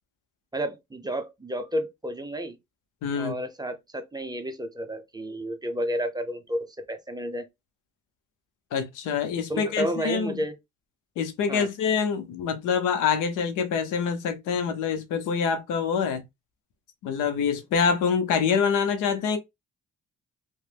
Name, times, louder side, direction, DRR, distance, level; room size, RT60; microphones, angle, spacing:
voice 1, 0.5-2.6 3.1-7.4 9.5-10.5 11.5-11.7, equal, 15° right, 0.6 m, -31 dB
voice 2, 3.0-3.4 8.7-10.4 11.2-16.2 17.0-19.4, left 6 dB, 90° left, 0.8 m, -25 dB
2.9 x 2.2 x 3.3 m
cardioid pair, 90°, 30 cm